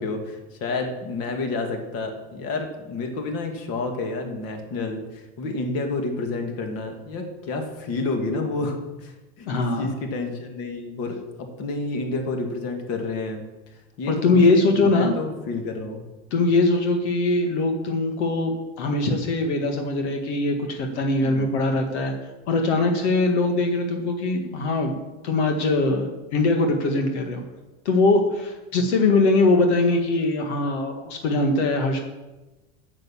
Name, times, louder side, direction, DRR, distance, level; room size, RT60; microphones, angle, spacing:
voice 1, 0.0-9.1 9.4-11.2 11.6-13.4 14.0-16.0 21.2-21.6, left 3 dB, 45° left, 4 dB, 2.3 m, -29 dB
voice 2, 9.4-9.9 14.1-15.1 16.3-22.1 22.5-25.0 25.2-27.4 27.9-32.0, left 2 dB, 80° left, 4 dB, 1.8 m, -22 dB
9.0 x 8.1 x 7.2 m, 1.1 s
supercardioid pair, 135°, 33 cm